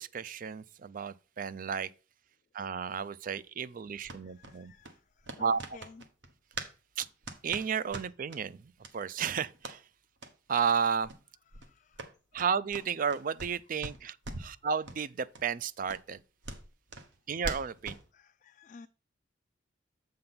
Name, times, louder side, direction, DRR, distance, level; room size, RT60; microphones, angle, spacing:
voice 1, 0.0-1.9 2.5-4.7 5.4-5.8 7.0-7.1 7.4-9.8 10.5-11.1 12.3-16.2 17.3-17.9, right 6 dB, 45° right, 0.4 m, -33 dB
sound 1, 4.0-6.7 7.0-8.4 8.8-8.9 9.2-9.8 10.2-10.3 10.7-10.8 11.0-11.2 11.5-13.6 13.8-14.6 14.9-15.0 15.3-15.4 15.9-18.0, right 2 dB, 65° right, 1.1 m, -43 dB
voice 2, 4.4-5.0 5.2-6.0 11.5-12.0 12.3-12.4 14.4-14.5 18.1-18.9, left 4 dB, 40° left, 0.3 m, -53 dB
7.7 x 3.7 x 5.7 m
head